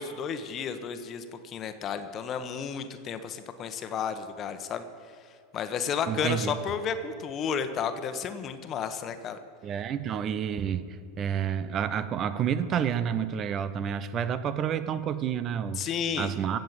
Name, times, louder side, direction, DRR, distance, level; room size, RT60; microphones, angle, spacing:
voice 1, 0.0-4.8 5.5-9.4 15.8-16.3, left 6 dB, 35° left, 9 dB, 1.2 m, -32 dB
voice 2, 6.1-6.6 9.6-15.8 16.2-16.6, right 8 dB, 35° right, 13 dB, 0.7 m, -29 dB
16.0 x 7.8 x 7.4 m, 2.4 s
figure-of-eight pair, 85°, 0 cm